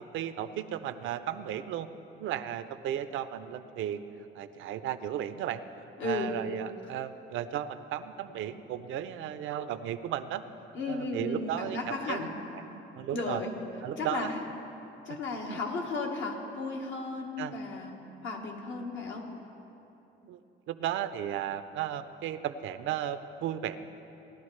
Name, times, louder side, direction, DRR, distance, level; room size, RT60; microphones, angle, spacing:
voice 1, 0.0-1.9 2.2-4.0 4.3-5.6 6.0-10.4 10.9-12.3 12.7-13.4 13.8-14.3 15.1-15.2 15.5-15.6 17.4-17.5 20.2-20.4 20.7-23.8, right 11 dB, 85° right, 11 dB, 0.5 m, -35 dB
voice 2, 6.0-6.3 10.7-12.3 13.1-13.6 14.0-14.4 15.0-17.9 18.2-19.3, left 3 dB, 75° left, 1 dB, 1.5 m, -34 dB
18.0 x 11.5 x 3.2 m, 3.0 s
cardioid pair, 90°, 20 cm